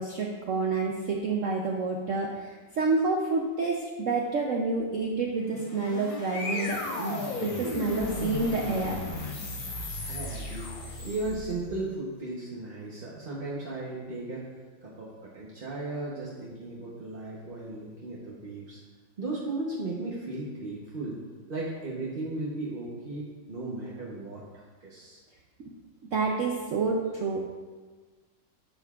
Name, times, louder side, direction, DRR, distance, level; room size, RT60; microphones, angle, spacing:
voice 1, 0.0-9.0 26.1-27.5, right 3 dB, 75° right, 0 dB, 0.7 m, -29 dB
sound 1, 5.4-11.7, left 3 dB, 80° left, 2.1 m, -35 dB
voice 2, 10.0-14.5 14.8-18.8 19.2-21.2 21.5-24.4 24.8-25.2, right 2 dB, 40° right, -6 dB, 0.8 m, -36 dB
10.0 x 6.9 x 2.4 m, 1.4 s
omnidirectional pair, 2.1 m